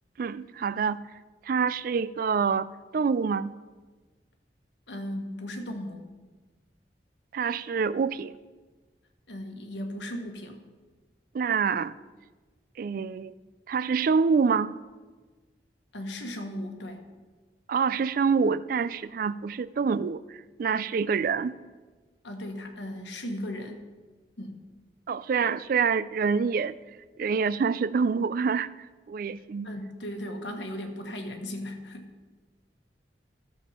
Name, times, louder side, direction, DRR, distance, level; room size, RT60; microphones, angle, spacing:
voice 1, 0.2-1.0 1.4-2.7 2.9-3.5 7.3-8.3 11.3-11.9 12.8-13.3 13.7-14.8 17.7-21.6 25.1-26.8 27.2-28.7 29.1-29.7, right 5 dB, 50° right, 17 dB, 0.3 m, -26 dB
voice 2, 4.9-6.0 9.3-10.6 15.9-17.0 22.2-23.9 24.4-24.6 29.6-32.1, left 1 dB, 85° left, 4 dB, 1.4 m, -36 dB
13.5 x 7.1 x 4.4 m, 1.3 s
head